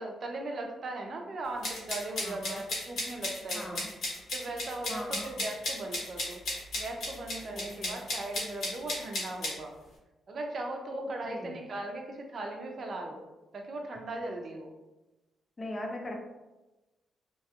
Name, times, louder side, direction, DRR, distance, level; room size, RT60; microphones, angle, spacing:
voice 1, 0.0-3.8 4.3-6.4 6.7-9.7 10.3-13.2 13.5-14.7, right 2 dB, 55° right, 2 dB, 0.6 m, -38 dB
sound 1, 1.6-9.5, left 2 dB, 75° left, 1.1 m, -34 dB
voice 2, 2.2-2.6 3.5-3.9 4.9-5.4 7.5-8.0 10.9-11.5 15.6-16.1, left 1 dB, 30° left, 1 dB, 0.7 m, -40 dB
2.9 x 2.3 x 2.8 m, 1.0 s
cardioid pair, 80°, 0 cm